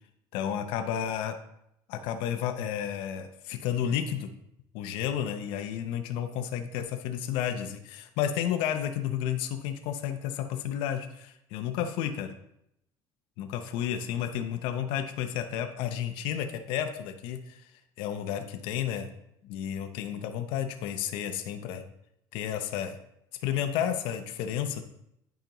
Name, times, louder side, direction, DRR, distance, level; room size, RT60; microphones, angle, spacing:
voice 1, 0.3-1.4 1.9-4.3 4.7-12.3 13.4-17.7 18.0-19.1 19.4-21.8 22.3-23.0 23.4-24.8, left 9 dB, 80° left, 7 dB, 0.7 m, -32 dB
9.3 x 5.1 x 3.0 m, 0.77 s
cardioid pair, 140°, 9 cm